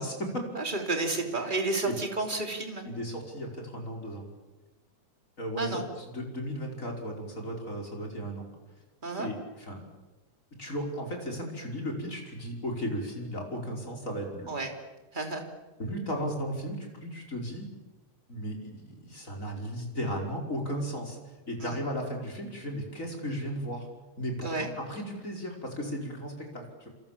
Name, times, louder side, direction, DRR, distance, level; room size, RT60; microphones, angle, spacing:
voice 1, 0.0-0.4 1.4-1.5 1.8-1.9 2.8-4.3 5.4-8.5 9.2-9.8 10.6-14.5 15.8-17.7 18.3-21.2 21.5-23.9 24.2-26.9, equal, 25° left, 1 dB, 5.5 m, -35 dB
voice 2, 0.6-2.8 5.6-5.8 9.0-9.3 14.5-14.7 15.1-15.4 21.6-21.8 24.4-24.7, right 3 dB, 15° right, 3 dB, 3.6 m, -31 dB
28.0 x 28.0 x 7.5 m, 1.1 s
omnidirectional pair, 3.3 m